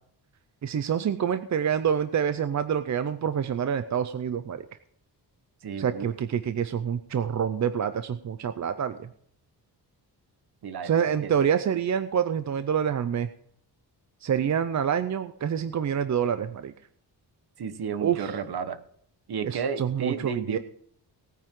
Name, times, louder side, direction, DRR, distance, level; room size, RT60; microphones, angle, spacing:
voice 1, 0.6-4.6 5.8-9.1 10.8-13.3 14.2-16.7 18.0-18.4 19.4-20.6, right 8 dB, 45° right, 11 dB, 0.6 m, -27 dB
voice 2, 5.6-6.1 10.6-11.5 17.6-18.8 19.3-20.6, right 6 dB, 65° right, 10 dB, 1.3 m, -33 dB
18.5 x 9.3 x 3.8 m, 0.66 s
wide cardioid pair, 155°, 41 cm